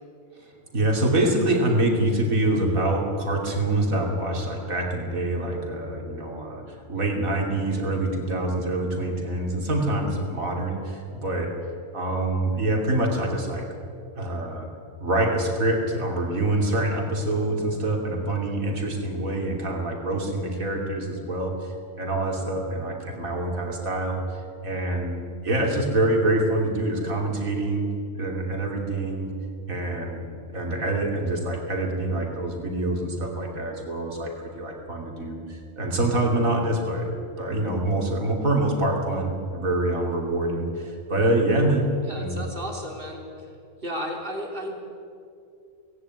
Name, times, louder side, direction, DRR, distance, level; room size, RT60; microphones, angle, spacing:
voice 1, 0.7-11.5 11.9-13.7 14.2-14.7 15.0-27.8 28.1-29.3 29.7-30.2 30.5-37.1 37.4-42.4, right 1 dB, 85° right, 1 dB, 3.4 m, -25 dB
voice 2, 42.0-43.5 43.8-44.7, equal, 40° right, 1 dB, 3.3 m, -34 dB
18.5 x 17.0 x 9.6 m, 2.4 s
omnidirectional pair, 1.4 m